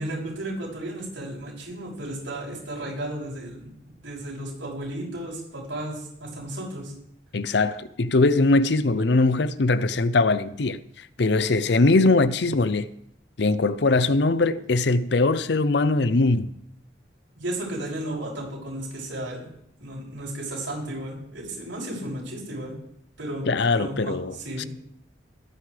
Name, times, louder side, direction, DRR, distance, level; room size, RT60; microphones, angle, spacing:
voice 1, 0.0-6.9 17.3-19.5 19.8-22.7 23.2-23.5 23.7-24.7, right 1 dB, 90° right, 6.6 m, -34 dB
voice 2, 7.3-10.8 11.2-12.9 13.4-16.5 23.5-24.6, left 3 dB, 65° left, 0.6 m, -21 dB
22.0 x 9.6 x 3.4 m
head